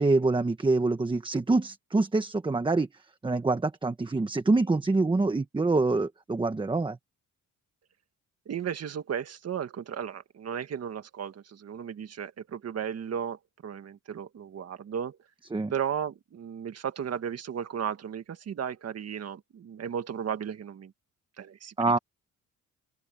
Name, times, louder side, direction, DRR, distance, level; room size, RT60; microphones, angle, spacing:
voice 1, 0.0-2.9 3.2-7.0 15.5-15.7 21.8-22.0, right 3 dB, 15° right, 1.1 m, -25 dB
voice 2, 8.4-15.2 15.7-20.9 21.4-22.0, right 8 dB, 50° right, 1.7 m, -35 dB
open air
cardioid pair, 125°, 32 cm